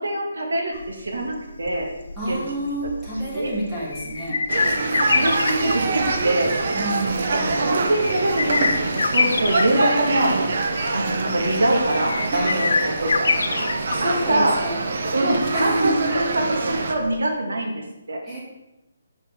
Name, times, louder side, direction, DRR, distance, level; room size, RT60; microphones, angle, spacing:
voice 1, 0.0-1.9 2.3-2.4 3.3-3.5 5.1-6.5 7.6-10.5 10.9-13.3 14.0-14.6 15.1-18.2, right 1 dB, 80° right, 1 dB, 1.9 m, -24 dB
sound 1, 0.7-17.2, left 4 dB, 75° left, 0.6 m, -27 dB
voice 2, 2.2-4.4 6.7-7.6 12.3-12.5 14.0-14.8 15.5-16.1 18.2-18.4, right 1 dB, 10° right, -8 dB, 2.5 m, -29 dB
sound 2, 4.5-16.9, right 3 dB, 55° right, 0.9 m, -25 dB
6.8 x 5.5 x 4.5 m, 0.99 s
hypercardioid pair, 160°, 0 cm